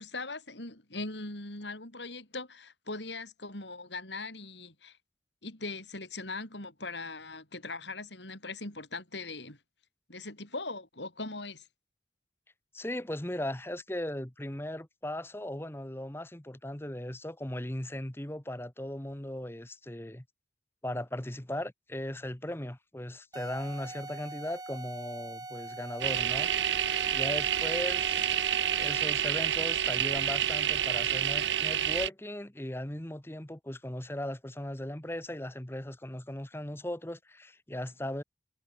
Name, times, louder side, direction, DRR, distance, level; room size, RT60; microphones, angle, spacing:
voice 1, 0.0-5.0 5.4-9.6 10.1-11.7, left 3 dB, 80° left, 7.3 m, -40 dB
voice 2, 12.7-20.2 20.8-26.7 27.1-38.2, left 1 dB, 15° left, 1.2 m, -38 dB
sound 1, 23.3-29.2, right 2 dB, 20° right, 1.2 m, -43 dB
sound 2, 26.0-32.1, right 9 dB, 85° right, 1.0 m, -29 dB
head